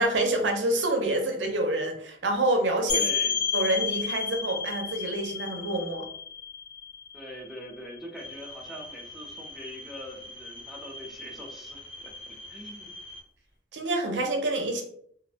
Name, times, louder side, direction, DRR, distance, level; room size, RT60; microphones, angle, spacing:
voice 1, 0.0-3.0 3.5-6.1 13.7-14.8, right 1 dB, 75° right, 3 dB, 0.6 m, -27 dB
sound 1, 2.9-8.4, left 6 dB, 40° left, 0.6 m, -31 dB
voice 2, 2.9-3.4 7.1-12.9, equal, ahead, -1 dB, 0.4 m, -43 dB
sound 2, 8.2-13.2, left 1 dB, 80° left, 0.7 m, -44 dB
2.5 x 2.1 x 2.7 m, 0.63 s
head